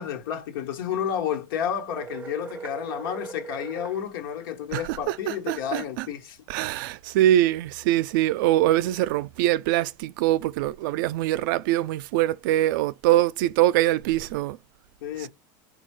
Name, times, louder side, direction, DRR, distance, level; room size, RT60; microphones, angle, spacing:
voice 1, 0.0-6.4 15.0-15.3, left 9 dB, 90° left, 1.2 m, -31 dB
sound 1, 1.9-4.0, right 5 dB, 15° right, 0.5 m, -39 dB
voice 2, 4.7-6.1 6.5-14.6 15.2-15.3, right 14 dB, 75° right, 0.4 m, -23 dB
4.4 x 2.3 x 4.6 m
supercardioid pair, 140°, 11 cm